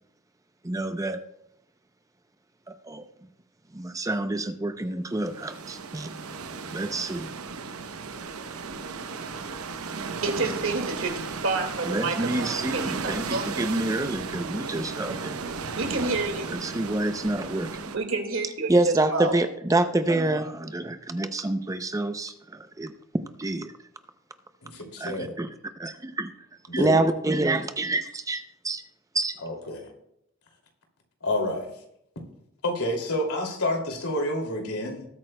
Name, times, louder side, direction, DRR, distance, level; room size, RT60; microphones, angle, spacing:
voice 1, 0.6-1.2 2.7-3.1 3.7-6.1 6.7-7.3 11.9-15.4 16.5-17.9 18.7-22.9 23.4-23.7 25.0-25.5 25.8-26.3 26.7-28.8 29.1-29.4, right 2 dB, 15° right, 8 dB, 0.5 m, -27 dB
sound 1, 5.1-18.0, right 4 dB, 80° right, 0.8 m, -35 dB
voice 2, 10.2-13.7 15.8-16.6 17.9-19.3, right 3 dB, 65° right, 4 dB, 2.0 m, -29 dB
voice 3, 24.6-25.3 26.7-26.9 29.4-29.9 31.2-31.7 32.6-35.1, left 1 dB, 85° left, 2 dB, 2.6 m, -29 dB
19.5 x 8.8 x 2.2 m, 0.76 s
head